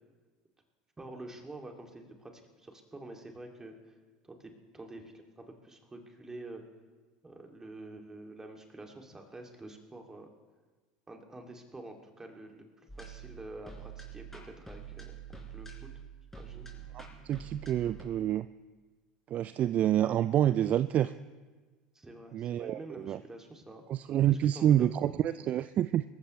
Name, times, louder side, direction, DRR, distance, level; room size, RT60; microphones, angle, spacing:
voice 1, 1.0-3.9 4.2-6.6 7.2-10.3 11.1-16.0 16.3-16.7 21.9-23.8 24.3-25.6, right 2 dB, 15° right, 2 dB, 2.5 m, -48 dB
sound 1, 12.9-18.0, right 6 dB, 10° left, 4.7 m, -46 dB
voice 2, 16.9-18.5 19.3-21.1 22.3-23.2 23.9-26.0, right 11 dB, 40° right, 14 dB, 0.4 m, -28 dB
26.0 x 14.5 x 3.2 m, 1.3 s
hypercardioid pair, 80°, 4 cm